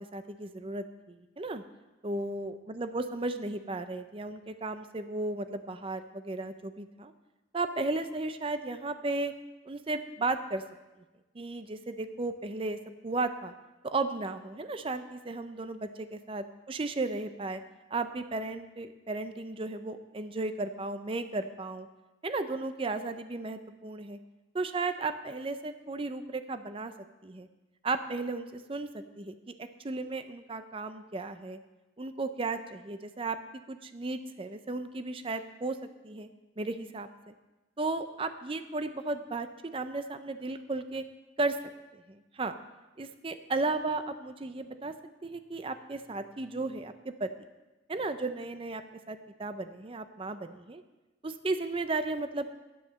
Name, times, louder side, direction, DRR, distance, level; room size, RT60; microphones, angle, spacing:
voice 1, 0.0-1.6 2.0-7.1 7.5-9.3 9.7-10.6 11.4-12.8 13.0-13.5 13.8-17.6 17.9-21.9 22.2-24.2 24.5-26.9 27.2-27.5 27.8-29.4 29.8-31.6 32.0-33.4 33.7-35.8 36.0-36.3 36.6-37.3 37.8-41.0 41.4-41.6 42.1-42.5 43.0-44.9 45.2-47.3 47.9-48.8 49.1-50.8 51.2-52.5, right 3 dB, 30° right, 10 dB, 0.5 m, -34 dB
10.5 x 9.4 x 6.3 m, 1.1 s
head